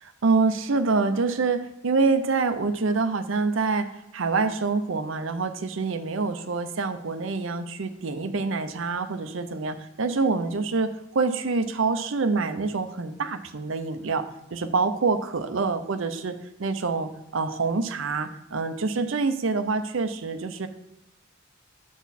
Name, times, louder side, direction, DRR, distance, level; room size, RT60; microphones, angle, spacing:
voice 1, 0.0-14.2 14.5-20.7, right 4 dB, 70° right, 9 dB, 0.6 m, -26 dB
6.2 x 5.8 x 4.2 m, 0.93 s
head